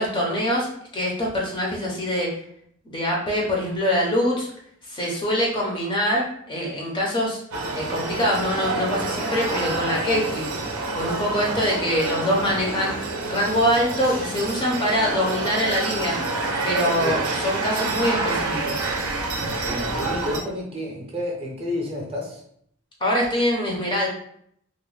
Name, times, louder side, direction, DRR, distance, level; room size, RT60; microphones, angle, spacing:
voice 1, 0.0-2.3 2.9-4.5 4.9-7.4 7.7-10.5 10.9-12.9 13.3-16.2 16.6-18.8 23.0-24.1, equal, 20° left, -2 dB, 0.5 m, -24 dB
sound 1, 7.5-20.4, right 3 dB, 85° right, 0.5 m, -28 dB
voice 2, 19.6-22.4, left 1 dB, 25° right, -1 dB, 0.5 m, -30 dB
2.4 x 2.0 x 3.1 m, 0.68 s
head